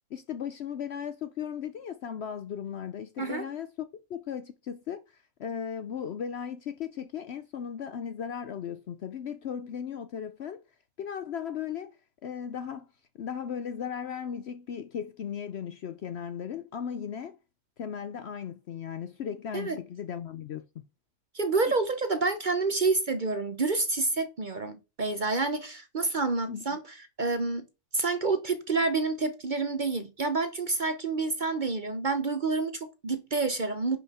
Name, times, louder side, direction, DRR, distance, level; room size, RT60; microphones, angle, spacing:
voice 1, 0.1-3.7 4.1-10.6 11.0-12.0 12.2-12.9 13.1-17.4 17.8-20.8 26.5-26.8, left 8 dB, 60° left, 0.7 m, -36 dB
voice 2, 21.3-26.8 27.2-27.7 27.9-34.0, right 3 dB, 40° right, 0.8 m, -28 dB
10.5 x 5.6 x 4.2 m
omnidirectional pair, 1.5 m